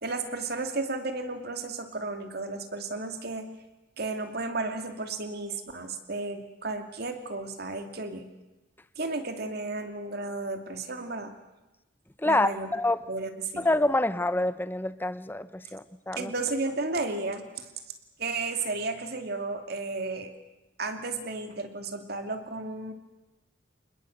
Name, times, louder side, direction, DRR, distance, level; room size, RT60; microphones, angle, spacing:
voice 1, 0.0-3.5 4.0-8.3 9.0-11.3 12.3-12.7 13.1-13.7 16.2-17.7 18.2-20.3 20.8-22.9, right 3 dB, 55° right, 6 dB, 2.6 m, -33 dB
voice 2, 12.2-13.0 13.6-16.3, left 1 dB, 10° left, 14 dB, 0.8 m, -27 dB
26.5 x 20.5 x 8.0 m, 1.0 s
head